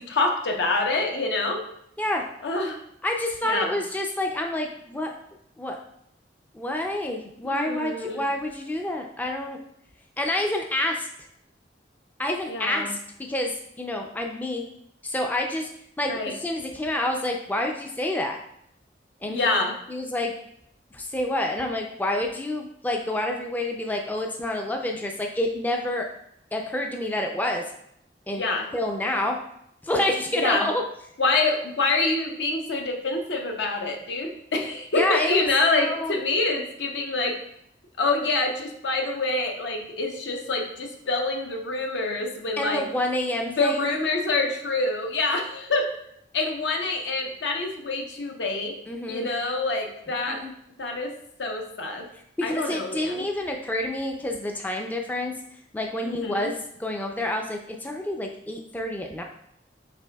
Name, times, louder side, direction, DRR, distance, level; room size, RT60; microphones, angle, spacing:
voice 1, 0.0-1.6 2.4-2.8 3.4-3.8 7.4-8.2 12.5-12.9 16.1-16.3 19.3-19.7 28.3-28.7 30.4-30.7 31.2-37.4 38.0-42.8 43.5-45.9 46.3-48.8 49.1-50.4 50.8-51.1 51.4-52.1 52.4-53.3 56.0-56.5, left 3 dB, 75° left, 2 dB, 0.7 m, -26 dB
voice 2, 3.0-5.2 5.6-5.8 6.5-9.6 10.2-11.1 12.2-14.6 15.0-15.7 16.0-18.4 19.2-19.6 19.9-20.3 20.9-26.1 26.5-27.6 28.3-28.4 28.7-29.4 29.8-30.8 34.9-35.5 35.8-36.1 42.6-43.9 48.9-49.3 50.3-50.5 52.4-55.3 55.7-59.2, left 1 dB, 10° left, 2 dB, 0.3 m, -28 dB
5.9 x 3.8 x 2.2 m, 0.73 s
head